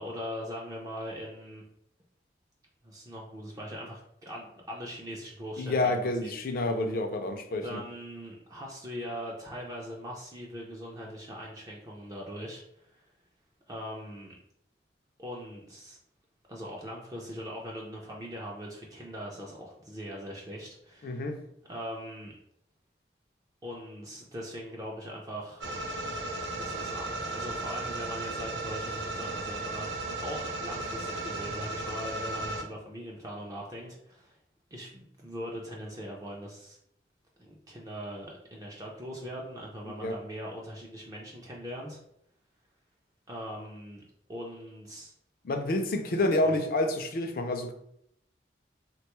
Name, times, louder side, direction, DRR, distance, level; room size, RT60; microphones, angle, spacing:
voice 1, 0.0-1.6 2.8-6.3 7.6-13.0 13.7-14.3 15.2-16.0 16.5-21.3 21.7-22.3 23.6-25.6 26.5-34.4 34.7-36.8 37.4-42.0 43.3-44.0 44.3-45.1 46.4-46.5, equal, 20° right, 0.4 m, -41 dB
voice 2, 5.6-7.8 21.0-21.4 40.0-40.2 45.4-47.7, left 2 dB, 50° left, 0.4 m, -28 dB
sound 1, 25.6-32.6, right 2 dB, 70° right, 0.5 m, -35 dB
3.4 x 2.2 x 3.0 m
head